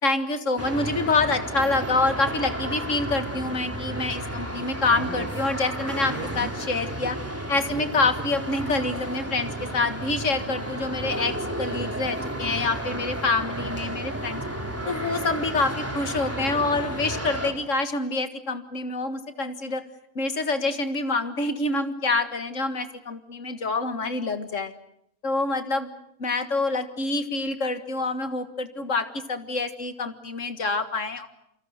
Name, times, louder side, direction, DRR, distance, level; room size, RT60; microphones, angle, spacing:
voice 1, 0.0-7.2 7.5-14.4 14.9-19.8 20.2-24.7 25.2-25.9 26.2-31.3, left 3 dB, 60° left, 10 dB, 2.0 m, -26 dB
sound 1, 0.6-17.5, right 1 dB, 10° right, 3.7 m, -32 dB
sound 2, 1.6-1.9 3.0-3.1 4.9-5.5 6.1-6.6 7.7-8.9, right 3 dB, 85° right, 2.6 m, -38 dB
28.0 x 25.5 x 6.5 m, 0.74 s
omnidirectional pair, 1.5 m